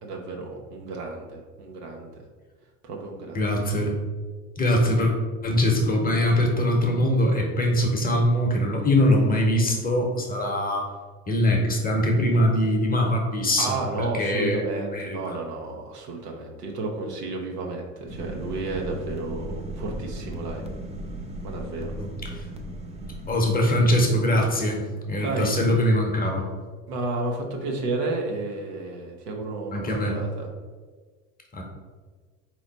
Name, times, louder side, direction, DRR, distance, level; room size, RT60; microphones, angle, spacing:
voice 1, 0.0-2.1 2.8-3.4 13.6-20.7 21.4-21.9 25.2-25.6 26.9-30.5, right 2 dB, 80° right, 0 dB, 1.0 m, -32 dB
voice 2, 3.3-3.9 4.6-5.1 5.4-10.8 11.3-14.6 14.9-15.4 22.0-22.4 23.3-26.5 29.7-30.2 31.5-31.6, left 1 dB, 20° left, 1 dB, 0.9 m, -22 dB
sound 1, 18.1-23.3, right 1 dB, 15° right, 0.4 m, -36 dB
4.0 x 3.1 x 4.0 m, 1.5 s
hypercardioid pair, 75°, 47 cm